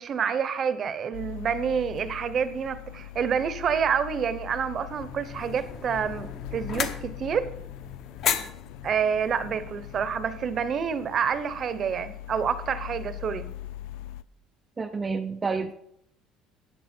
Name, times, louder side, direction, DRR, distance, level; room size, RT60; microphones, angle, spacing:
voice 1, 0.0-7.5 8.8-13.5, right 7 dB, 30° right, 13 dB, 0.8 m, -28 dB
sound 1, 1.1-14.2, left 13 dB, 85° left, 0.4 m, -42 dB
sound 2, 4.9-10.3, left 8 dB, 40° left, 1.0 m, -35 dB
voice 2, 14.8-15.7, right 4 dB, 15° right, 6 dB, 0.5 m, -29 dB
13.0 x 9.0 x 4.4 m, 0.74 s
cardioid pair, 165°, 0 cm